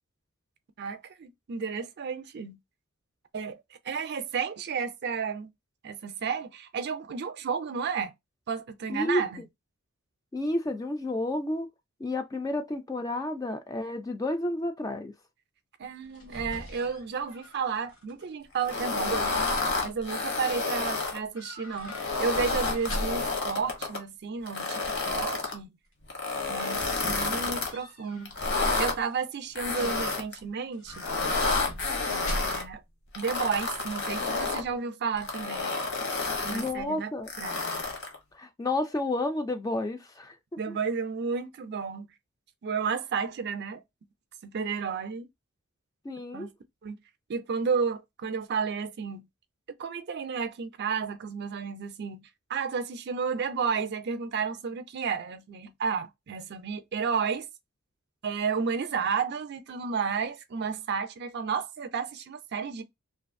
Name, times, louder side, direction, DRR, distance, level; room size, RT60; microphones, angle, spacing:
voice 1, 0.8-2.6 3.3-5.5 5.8-8.1 8.5-9.4 15.8-19.4 19.8-25.8 26.5-28.4 28.8-31.1 32.1-32.8 33.1-35.8 36.4-37.1 37.4-37.8 40.6-42.1 42.6-43.8 44.4-45.3 46.3-46.5 46.8-47.0 47.3-49.3 49.8-57.5 58.2-62.8, right 6 dB, 50° right, 0.4 m, -32 dB
voice 2, 8.9-9.2 10.3-11.7 12.0-15.1 36.5-37.3 38.3-40.4 40.7-40.8 46.0-46.5, left 1 dB, 15° left, 0.3 m, -31 dB
sound 1, 15.9-18.2 18.6-19.1 21.3-23.4 26.2-28.4 28.8-29.3 30.7-32.8 33.1-33.2, equal, 70° left, 1.3 m, -41 dB
sound 2, 18.6-21.2 21.8-24.0 24.5-25.5 26.1-27.7 28.3-28.9 29.6-30.4 30.9-32.6 33.1-34.6 35.2-36.7 37.3-38.2, left 3 dB, 55° left, 0.9 m, -30 dB
2.6 x 2.4 x 2.5 m
head